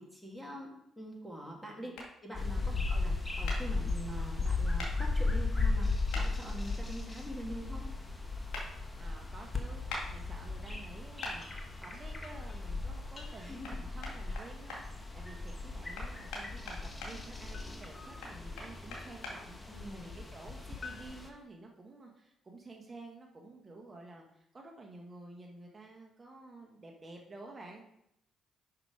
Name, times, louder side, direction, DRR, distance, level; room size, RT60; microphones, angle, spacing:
voice 1, 0.0-1.9 2.2-7.9 13.4-13.8 19.7-20.1, equal, ahead, -1 dB, 2.5 m, -44 dB
sound 1, 1.9-2.1 3.5-3.6 4.8-4.9 6.1-6.3 8.5-8.7 9.9-10.0 11.2-11.4 13.6-13.7 14.0-14.8 15.9-17.1 18.2-19.3, left 2 dB, 70° left, 2.1 m, -40 dB
sound 2, 2.3-21.3, left 3 dB, 20° left, 1.3 m, -36 dB
voice 2, 9.0-27.9, right 2 dB, 35° right, 0 dB, 1.4 m, -51 dB
sound 3, 11.4-13.8 17.5-19.4 20.8-22.3, left 5 dB, 40° left, 1.3 m, -54 dB
5.9 x 5.8 x 4.8 m, 0.77 s
hypercardioid pair, 55°, 0 cm